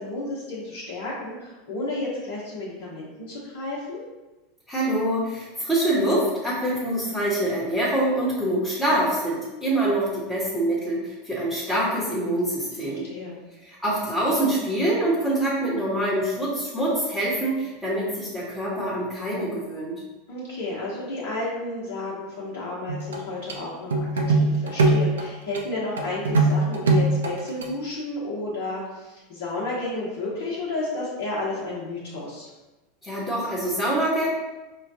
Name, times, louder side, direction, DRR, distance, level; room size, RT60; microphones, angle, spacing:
voice 1, 0.0-4.0 12.8-13.4 20.3-32.5, left 2 dB, 65° left, -7 dB, 0.9 m, -32 dB
voice 2, 4.7-13.1 13.6-20.0 33.0-34.3, right 1 dB, 5° left, -8 dB, 1.0 m, -25 dB
sound 1, 22.9-23.2 23.5-23.6 23.9-25.3 25.5-25.6 26.0-27.6, right 2 dB, 80° right, 0.5 m, -21 dB
4.9 x 2.2 x 2.7 m, 1.1 s
hypercardioid pair, 90°, 0 cm